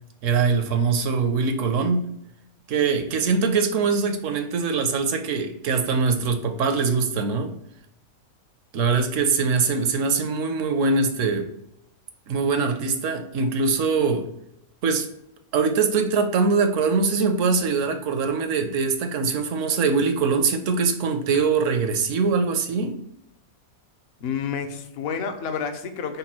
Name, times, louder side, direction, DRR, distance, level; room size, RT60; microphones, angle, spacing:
voice 1, 0.2-2.1 2.7-7.5 8.7-11.5 12.3-14.3 14.8-15.1 15.5-22.9, right 4 dB, 65° right, 6 dB, 0.9 m, -22 dB
voice 2, 24.2-26.2, left 6 dB, 60° left, 6 dB, 0.7 m, -29 dB
5.3 x 2.2 x 4.2 m, 0.79 s
omnidirectional pair, 1.5 m